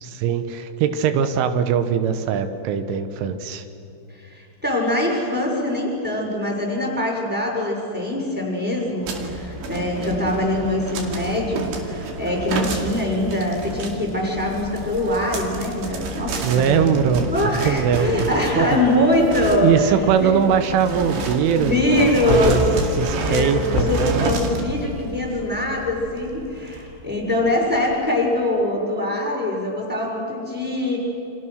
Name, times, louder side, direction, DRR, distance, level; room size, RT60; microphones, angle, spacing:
voice 1, 0.0-3.7 16.4-18.3 18.6-18.7 19.6-22.6 23.0-24.3, right 7 dB, 85° right, 9 dB, 3.6 m, -21 dB
voice 2, 4.2-19.9 20.2-20.3 21.5-22.6 23.2-31.0, left 1 dB, ahead, -2 dB, 5.9 m, -23 dB
sound 1, 9.0-27.8, right 2 dB, 70° right, 4.4 m, -30 dB
sound 2, 18.6-21.7 22.1-26.8 27.2-27.3, left 7 dB, 80° left, 1.8 m, -35 dB
29.5 x 26.0 x 6.5 m, 2.9 s
omnidirectional pair, 5.4 m